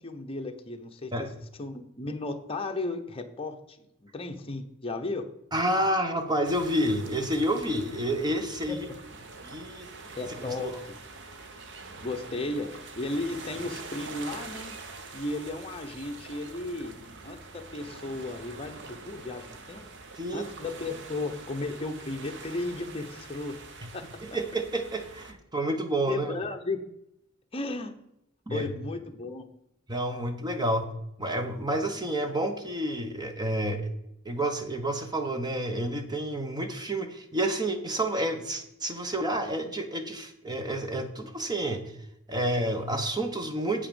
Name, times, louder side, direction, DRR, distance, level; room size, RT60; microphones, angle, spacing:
voice 1, 0.0-1.3 1.6-5.3 8.7-8.8 10.2-10.9 12.0-14.8 15.1-17.0 17.2-19.8 20.3-23.6 23.9-24.1 26.1-26.8 27.5-28.0 28.5-29.5, left 2 dB, 25° left, 4 dB, 1.0 m, -35 dB
voice 2, 5.5-8.9 9.4-9.9 10.5-10.6 20.2-20.5 24.2-26.3 28.5-28.7 29.9-30.9 31.2-33.9 34.2-41.9 42.3-43.9, right 1 dB, 20° right, 6 dB, 1.0 m, -29 dB
sound 1, 6.4-25.3, right 3 dB, 55° right, 1.0 m, -45 dB
8.5 x 5.7 x 7.0 m, 0.80 s
head